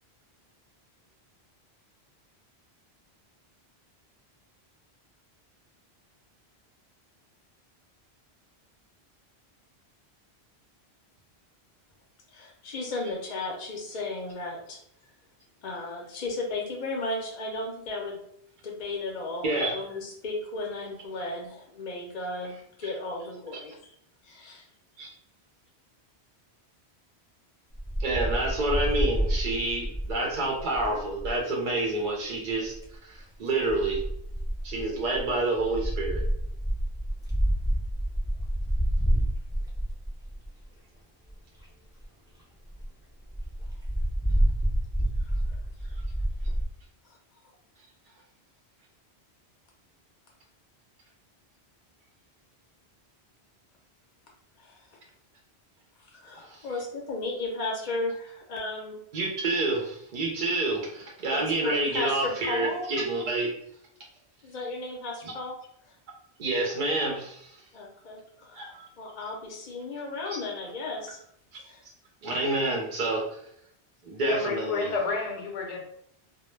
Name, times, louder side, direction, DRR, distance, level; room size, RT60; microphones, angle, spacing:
voice 1, 12.3-14.8 15.6-18.2 18.6-23.8 24.2-24.7 45.2-45.4 54.6-54.8 56.0-59.0 61.3-62.9 64.4-65.5 65.8-65.9 67.7-71.2 71.6-71.8, left 2 dB, 50° left, -1 dB, 0.6 m, -35 dB
Wind, 27.8-31.4 32.5-33.0 33.7-40.6 41.3-41.4 41.6-41.7 42.0-42.1 42.4-42.5 42.7-42.9 43.3-46.6, right 1 dB, 5° right, 0.3 m, -28 dB
voice 2, 28.0-32.8 33.0-34.0 34.6-36.2 56.4-56.6 59.1-63.5 66.4-67.5 68.6-68.9 72.2-73.2 74.0-74.9, right 2 dB, 55° right, -1 dB, 0.6 m, -28 dB
voice 3, 74.3-75.8, left 4 dB, 80° left, 1 dB, 0.9 m, -30 dB
2.2 x 2.0 x 3.1 m, 0.71 s
omnidirectional pair, 1.1 m